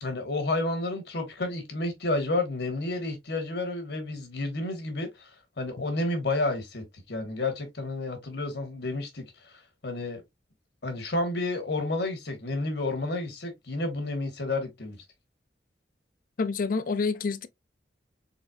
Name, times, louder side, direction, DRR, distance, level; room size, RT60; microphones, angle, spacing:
voice 1, 0.0-5.3 5.6-10.2 10.8-15.0, left 2 dB, 70° left, 1.3 m, -31 dB
voice 2, 16.4-17.5, left 4 dB, 50° left, 0.5 m, -28 dB
4.1 x 3.5 x 2.3 m
head